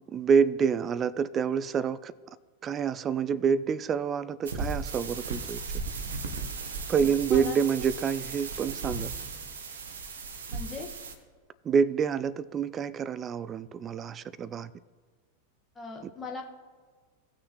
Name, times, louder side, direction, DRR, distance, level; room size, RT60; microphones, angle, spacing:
voice 1, 0.1-2.1 2.6-5.6 6.9-9.1 11.6-14.7, right 6 dB, 25° right, 16 dB, 0.3 m, -27 dB
sound 1, 4.4-11.1, right 4 dB, 65° right, 1.0 m, -36 dB
voice 2, 7.0-7.6 10.5-10.9 15.7-16.4, left 4 dB, 15° left, 0 dB, 1.6 m, -39 dB
18.5 x 6.3 x 3.1 m, 1.5 s
figure-of-eight pair, 90°, 0 cm